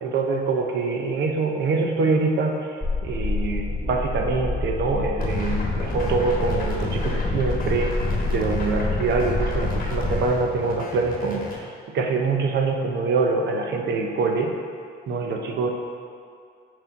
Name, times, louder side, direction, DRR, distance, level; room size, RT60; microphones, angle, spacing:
voice 1, 0.0-2.8 3.0-7.9 8.3-14.5 15.1-15.7, right 4 dB, 60° right, 2 dB, 0.7 m, -24 dB
sound 1, 2.8-10.3, left 2 dB, 5° left, 0.4 m, -27 dB
sound 2, 5.2-11.6, left 3 dB, 45° left, 1.1 m, -31 dB
6.0 x 4.7 x 4.0 m, 2.3 s
cardioid pair, 140°, 20 cm